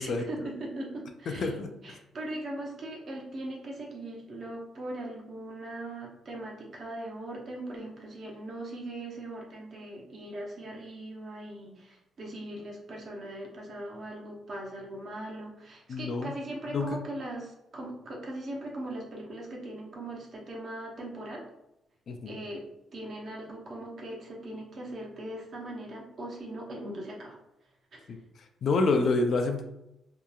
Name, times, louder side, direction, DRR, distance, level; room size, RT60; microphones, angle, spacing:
voice 1, 0.0-1.6 1.8-21.4 22.3-22.6 22.9-27.4 27.9-28.1, right 1 dB, 45° right, -1 dB, 0.6 m, -40 dB
voice 2, 1.3-1.7 15.9-16.3 16.7-17.0 22.1-22.3 28.1-28.2 28.6-29.6, left 3 dB, 50° left, 5 dB, 0.3 m, -27 dB
2.8 x 2.3 x 2.3 m, 0.86 s
cardioid pair, 145°, 0 cm